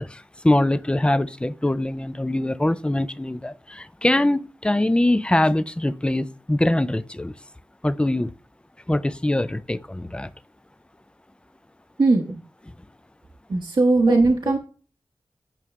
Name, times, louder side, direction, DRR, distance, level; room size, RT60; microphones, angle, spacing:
voice 1, 0.0-7.3 7.8-8.3 8.9-10.3 14.1-14.2, left 1 dB, 10° left, 0.5 m, -23 dB
voice 2, 12.0-12.4 13.5-14.6, right 3 dB, 60° right, 1.1 m, -19 dB
9.2 x 5.5 x 3.2 m
cardioid pair, 45°, 9 cm